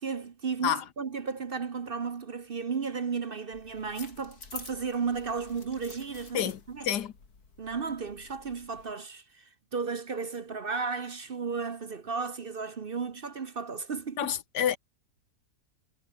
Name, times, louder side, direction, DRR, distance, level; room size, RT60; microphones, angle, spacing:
voice 1, 0.0-6.9 7.6-14.3, right 5 dB, 40° right, 1.0 m, -34 dB
sound 1, 3.5-8.9, left 4 dB, 70° left, 3.4 m, -49 dB
voice 2, 6.3-7.1 14.2-14.8, left 10 dB, 85° left, 1.7 m, -29 dB
omnidirectional pair, 1.7 m